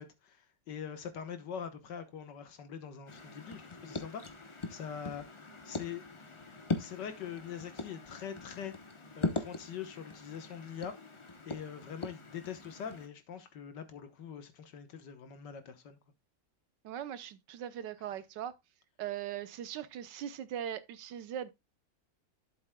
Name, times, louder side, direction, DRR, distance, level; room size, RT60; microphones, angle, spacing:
voice 1, 0.0-5.2 5.6-6.0 6.8-8.7 9.1-10.9 11.5-16.0, left 8 dB, 70° left, 1.8 m, -43 dB
sound 1, 3.1-13.1, left 3 dB, 35° left, 0.4 m, -41 dB
voice 2, 16.8-18.5 19.0-21.5, right 10 dB, 75° right, 1.4 m, -40 dB
11.5 x 7.8 x 2.2 m
omnidirectional pair, 2.0 m